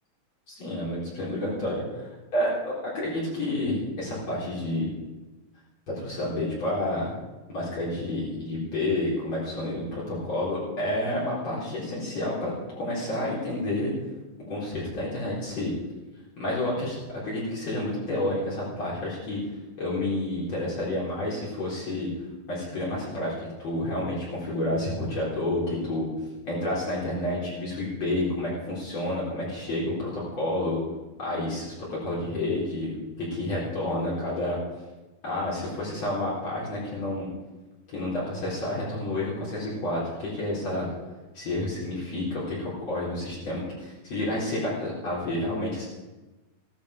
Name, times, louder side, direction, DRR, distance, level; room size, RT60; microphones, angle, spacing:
voice 1, 0.5-4.9 5.9-7.1 7.5-13.9 14.5-15.7 16.3-17.0 17.2-19.4 19.8-22.1 22.5-26.1 26.4-30.8 31.2-34.6 35.2-37.3 37.9-40.9 41.3-45.9, left 1 dB, 45° left, -7 dB, 5.0 m, -30 dB
16.5 x 13.5 x 5.1 m, 1.1 s
omnidirectional pair, 4.3 m